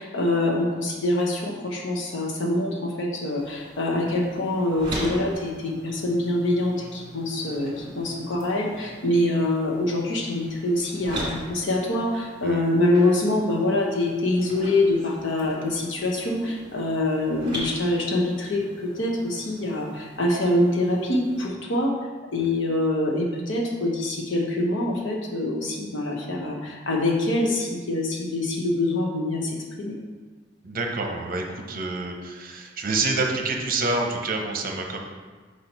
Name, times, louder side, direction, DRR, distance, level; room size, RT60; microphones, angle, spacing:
voice 1, 0.0-22.0 22.3-30.0, left 1 dB, 75° left, -1 dB, 1.1 m, -25 dB
sound 1, 3.4-21.5, right 1 dB, 25° right, 1.7 m, -40 dB
voice 2, 30.6-35.0, right 3 dB, 50° right, 2 dB, 0.8 m, -27 dB
4.7 x 4.5 x 5.4 m, 1.4 s
head